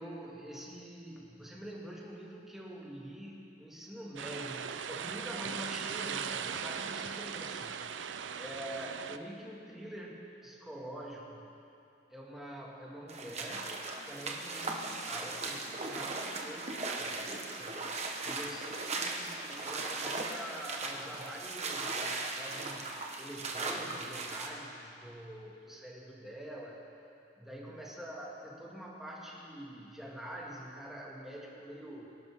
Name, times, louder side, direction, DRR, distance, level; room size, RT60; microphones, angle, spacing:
voice 1, 0.0-7.7 8.4-11.5 12.1-13.8 14.0-17.8 18.2-22.9 23.2-26.8 27.4-32.0, right 1 dB, ahead, -4 dB, 2.1 m, -45 dB
sound 1, 4.2-9.2, right 7 dB, 85° right, 0.6 m, -39 dB
sound 2, 13.1-24.5, right 3 dB, 35° right, 1.3 m, -38 dB
24.5 x 11.5 x 3.7 m, 2.6 s
head